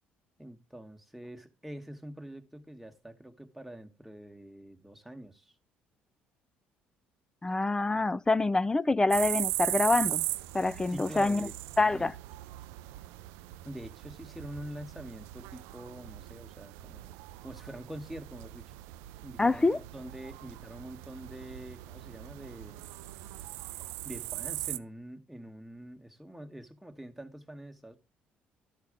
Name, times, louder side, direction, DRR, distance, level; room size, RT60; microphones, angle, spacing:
voice 1, 0.4-5.5 10.9-11.5 11.9-12.1 13.6-17.1 17.4-18.7 19.2-22.9 23.7-28.0, right 1 dB, ahead, 1.3 m, -45 dB
voice 2, 7.4-10.2 10.5-11.5 11.8-12.1 19.4-19.8, left 3 dB, 15° left, 0.4 m, -26 dB
sound 1, 9.1-24.8, right 17 dB, 85° right, 0.4 m, -39 dB
12.0 x 4.1 x 5.0 m
supercardioid pair, 75°, 4 cm